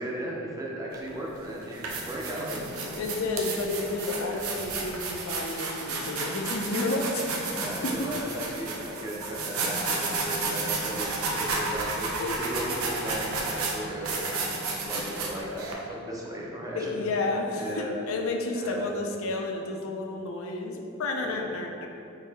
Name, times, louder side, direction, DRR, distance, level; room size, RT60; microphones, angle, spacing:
voice 1, 0.0-2.6 4.2-4.3 7.5-17.1 17.6-17.9 18.5-18.9 21.2-21.5, right 1 dB, 15° right, -3 dB, 0.4 m, -36 dB
sound 1, 0.9-1.1 1.6-15.7, right 3 dB, 80° right, 0.6 m, -32 dB
voice 2, 3.0-7.4 7.8-8.1 12.2-12.4 16.7-21.9, left 2 dB, 70° left, 2 dB, 0.4 m, -31 dB
3.9 x 2.6 x 3.9 m, 2.7 s
head